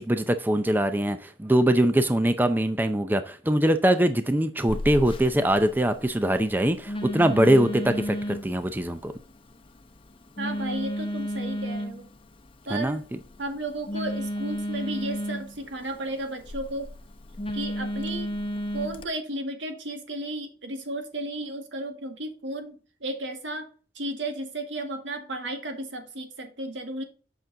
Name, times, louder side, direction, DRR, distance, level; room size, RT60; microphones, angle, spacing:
voice 1, 0.0-9.1 12.7-13.0, right 1 dB, 10° right, 0.5 m, -22 dB
Telephone, 4.7-19.1, equal, 30° left, 0.8 m, -34 dB
voice 2, 10.4-12.1 12.7-13.0 13.4-16.9 17.5-18.3 18.7-23.7 24.0-27.0, right 1 dB, 85° right, 1.8 m, -34 dB
8.0 x 6.1 x 3.8 m
head